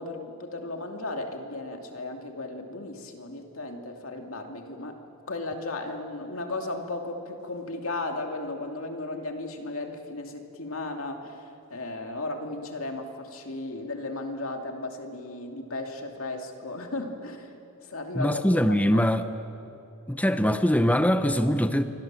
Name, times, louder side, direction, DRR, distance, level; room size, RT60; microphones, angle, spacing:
voice 1, 0.0-5.0 5.3-11.4 11.7-19.1, left 2 dB, 65° left, 2.8 m, -35 dB
voice 2, 18.1-19.3 20.1-21.8, equal, 5° left, 0.8 m, -22 dB
28.0 x 24.5 x 7.6 m
head